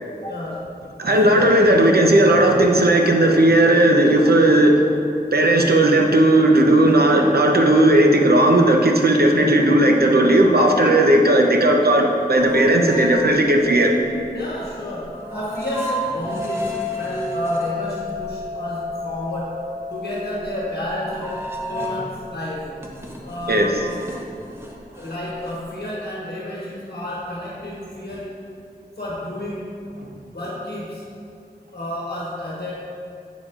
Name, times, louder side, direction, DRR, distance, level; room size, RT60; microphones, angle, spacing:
voice 1, 0.1-0.8 1.2-1.7 14.3-19.6 19.9-21.4 21.7-22.8 23.2-24.0 25.0-28.4 29.0-29.8 30.3-31.0 31.7-32.7, left 1 dB, 70° left, -7 dB, 1.2 m, -30 dB
voice 2, 1.0-4.8 5.3-13.9 23.5-23.7, right 1 dB, 65° right, 1 dB, 0.8 m, -15 dB
sound 1, 12.3-22.2 22.6-25.8, left 1 dB, 15° right, 0.8 m, -32 dB
8.3 x 7.2 x 2.5 m, 2.5 s
wide cardioid pair, 50°, 17 cm